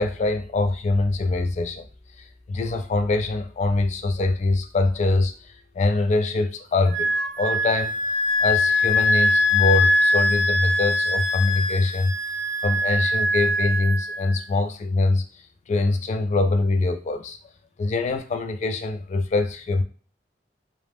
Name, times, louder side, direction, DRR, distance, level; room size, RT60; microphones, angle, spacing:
voice 1, 0.0-1.8 2.2-7.1 7.4-7.9 8.4-12.1 12.6-15.2 15.7-17.4 17.8-19.8, left 2 dB, 40° left, 8 dB, 0.3 m, -23 dB
Wind instrument woodwind instrument, 6.9-14.3, left 2 dB, 80° right, 0.5 m, -22 dB
2.5 x 2.0 x 3.2 m, 0.39 s
head